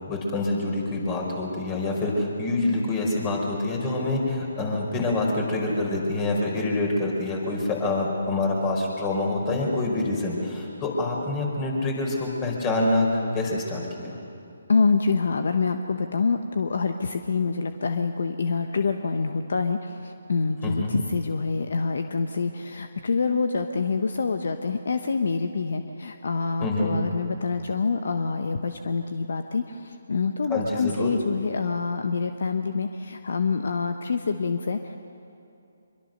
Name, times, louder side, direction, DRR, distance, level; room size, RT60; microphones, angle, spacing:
voice 1, 0.1-14.2 20.6-21.0 26.6-27.0 30.5-31.1, left 2 dB, 20° left, 0 dB, 4.9 m, -26 dB
voice 2, 14.7-35.0, left 4 dB, 60° left, 7 dB, 1.1 m, -26 dB
25.0 x 22.5 x 6.7 m, 2.7 s
figure-of-eight pair, 145°, 0 cm